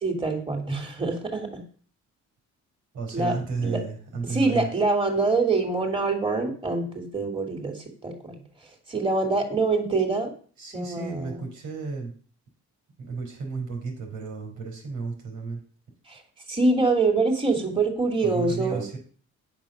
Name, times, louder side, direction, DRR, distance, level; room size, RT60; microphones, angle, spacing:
voice 1, 0.0-1.6 3.1-3.4 3.6-3.8 4.2-8.4 8.9-10.3 10.7-11.4 16.1-16.2 16.5-18.9, right 3 dB, 15° right, 2 dB, 2.8 m, -25 dB
voice 2, 2.9-4.7 10.6-12.1 13.0-15.6 18.2-19.0, right 4 dB, 85° right, 2 dB, 4.0 m, -33 dB
8.8 x 6.2 x 6.5 m, 0.44 s
cardioid pair, 90°, 30 cm